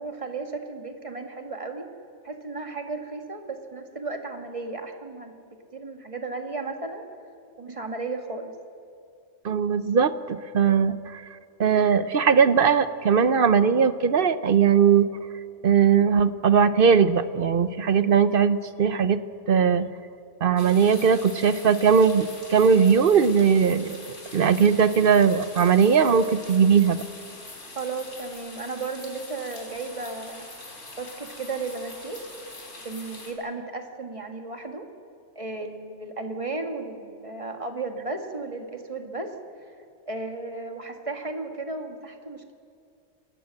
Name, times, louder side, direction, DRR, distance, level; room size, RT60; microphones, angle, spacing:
voice 1, 0.0-1.9 2.2-7.1 7.6-8.5 27.8-30.5 31.0-32.2 32.8-34.9 35.4-39.3 40.1-42.5, right 3 dB, 25° right, 4 dB, 1.8 m, -34 dB
voice 2, 9.4-11.2 11.6-15.1 15.6-19.2 19.5-19.9 20.4-24.0 24.3-27.0, right 6 dB, 55° right, 13 dB, 0.8 m, -19 dB
sound 1, 20.6-33.3, left 2 dB, 80° left, 3.6 m, -43 dB
29.0 x 13.0 x 7.6 m, 2.4 s
omnidirectional pair, 1.3 m